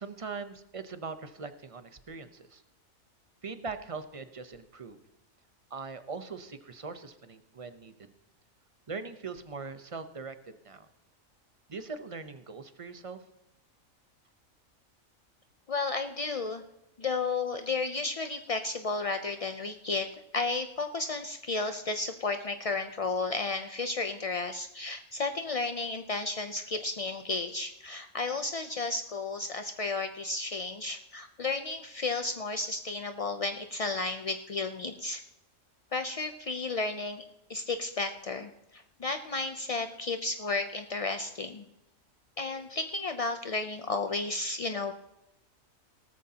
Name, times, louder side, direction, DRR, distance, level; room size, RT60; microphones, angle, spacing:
voice 1, 0.0-2.6 3.4-5.0 5.7-7.9 8.9-10.9 11.7-13.2, right 4 dB, 30° right, 10 dB, 0.7 m, -41 dB
voice 2, 15.7-16.6 17.0-20.1 20.3-35.2 35.9-37.2 37.5-41.6 42.4-44.9, left 3 dB, 55° left, 7 dB, 0.4 m, -33 dB
18.0 x 14.0 x 2.8 m, 0.91 s
omnidirectional pair, 1.4 m